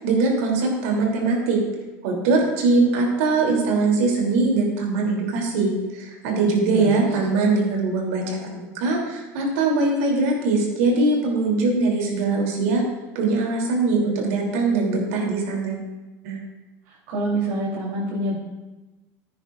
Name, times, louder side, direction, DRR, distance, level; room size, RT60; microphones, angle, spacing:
voice 1, 0.0-1.6 2.0-12.8 13.1-15.9 16.2-16.4, right 3 dB, 90° right, -1 dB, 3.3 m, -22 dB
voice 2, 6.7-7.1 16.9-18.4, right 1 dB, 70° right, -8 dB, 3.6 m, -26 dB
16.0 x 9.5 x 2.6 m, 1.1 s
cardioid pair, 160°, 7 cm